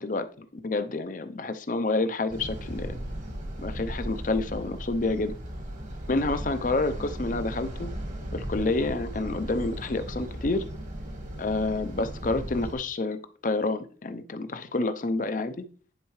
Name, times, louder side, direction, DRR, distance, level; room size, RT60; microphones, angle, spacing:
voice 1, 0.0-3.0 3.6-5.3 6.1-7.9 8.3-10.6 11.4-13.2 13.4-15.6, left 2 dB, 45° left, 0.6 m, -28 dB
sound 1, 2.3-12.7, equal, 45° right, 1.5 m, -36 dB
10.0 x 4.6 x 3.1 m
head